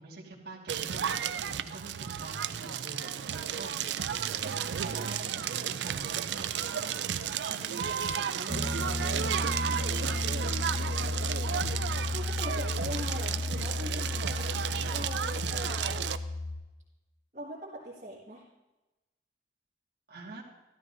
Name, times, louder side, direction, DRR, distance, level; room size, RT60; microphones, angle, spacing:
voice 1, 0.0-6.9 7.5-7.7 8.0-10.3 20.1-20.4, right 2 dB, 60° right, -4 dB, 1.8 m, -46 dB
Crackle, 0.7-16.2, right 8 dB, 75° right, 0.4 m, -33 dB
Piano, 8.5-16.6, left 2 dB, 15° left, 1.1 m, -33 dB
voice 2, 12.1-14.5 14.9-15.9 17.3-18.4, equal, 45° right, -7 dB, 1.7 m, -41 dB
13.5 x 12.5 x 2.6 m, 1.1 s
head